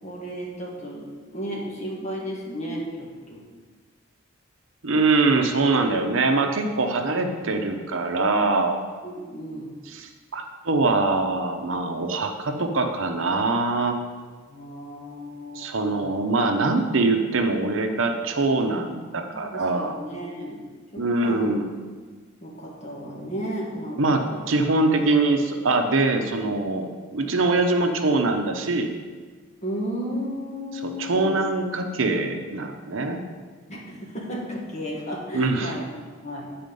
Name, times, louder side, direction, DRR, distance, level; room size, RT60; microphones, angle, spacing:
voice 1, 0.0-3.4 9.0-9.7 14.5-16.2 19.3-20.6 20.9-21.5 22.4-24.5 29.6-31.3 33.7-35.8 36.2-36.5, equal, 35° left, -3 dB, 1.6 m, -34 dB
voice 2, 4.8-8.8 9.9-14.0 15.6-20.0 21.0-21.7 24.0-28.9 30.8-33.2 35.3-35.7, right 3 dB, 70° right, 5 dB, 0.7 m, -23 dB
9.2 x 4.2 x 5.3 m, 1.5 s
head